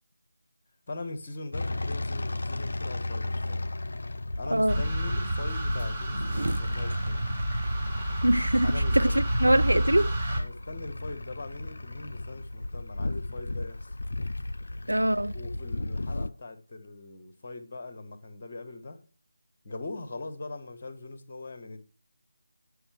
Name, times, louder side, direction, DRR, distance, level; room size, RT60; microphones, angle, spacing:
voice 1, 0.9-3.6 4.4-7.3 8.6-9.2 10.3-13.9 15.3-19.0 19.6-21.8, left 2 dB, 35° left, 1.5 m, -41 dB
sound 1, 1.5-16.3, left 2 dB, 55° left, 0.5 m, -35 dB
sound 2, 4.7-10.4, right 1 dB, 20° right, 2.0 m, -29 dB
sound 3, 5.3-10.4, right 2 dB, 55° right, 1.2 m, -40 dB
voice 2, 8.2-10.4 14.9-15.3, right 1 dB, 75° right, 0.4 m, -24 dB
9.5 x 5.6 x 5.9 m
figure-of-eight pair, 160°, 0 cm